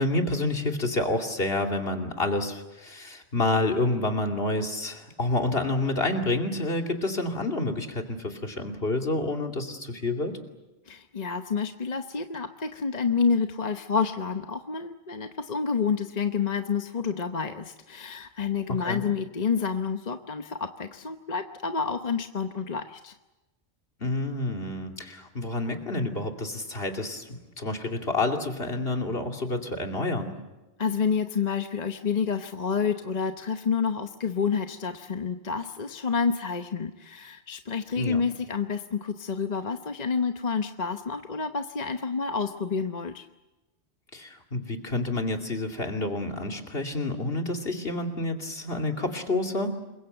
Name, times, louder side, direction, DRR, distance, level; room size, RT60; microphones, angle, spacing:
voice 1, 0.0-10.3 18.7-19.0 24.0-30.3 38.0-38.2 44.1-49.8, left 2 dB, 60° left, 3 dB, 2.9 m, -28 dB
voice 2, 10.9-23.1 30.8-43.3, left 5 dB, 40° left, 7 dB, 1.0 m, -29 dB
27.5 x 22.5 x 8.0 m, 1.0 s
omnidirectional pair, 1.1 m